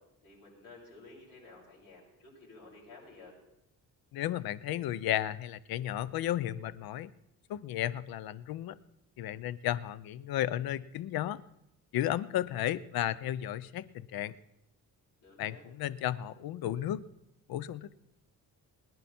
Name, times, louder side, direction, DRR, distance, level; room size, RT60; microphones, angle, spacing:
voice 1, 0.2-3.3 15.2-15.6, left 3 dB, 60° left, -5 dB, 6.9 m, -53 dB
voice 2, 4.1-7.1 7.5-8.8 9.2-11.4 11.9-14.4 15.4-17.0 17.5-18.0, left 12 dB, 80° left, 17 dB, 0.6 m, -33 dB
20.5 x 10.5 x 4.3 m, 0.84 s
cardioid pair, 180°, 36 cm